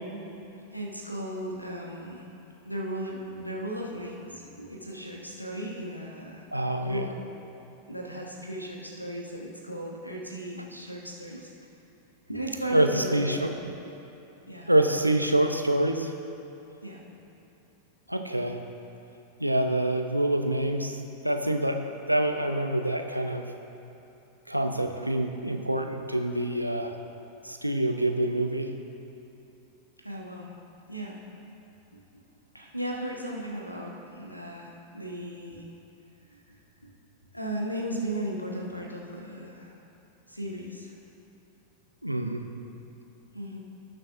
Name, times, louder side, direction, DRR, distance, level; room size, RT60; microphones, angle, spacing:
voice 1, 0.7-2.3 2.6-6.5 6.8-7.6 7.9-11.5 12.3-13.7 14.5-14.7 16.8-17.0 30.0-30.5 30.9-31.2 32.5-35.7 36.3-36.4 37.3-39.8 40.3-40.9 43.3-43.6, right 1 dB, 90° left, -1 dB, 1.2 m, -36 dB
voice 2, 6.5-7.1 12.7-13.5 14.7-16.1 18.1-18.6 19.4-21.8 22.1-23.5 24.5-27.0 27.4-28.7 42.0-42.4, right 1 dB, 90° right, 5 dB, 0.6 m, -26 dB
18.0 x 6.6 x 2.5 m, 2.9 s
figure-of-eight pair, 90°, 0 cm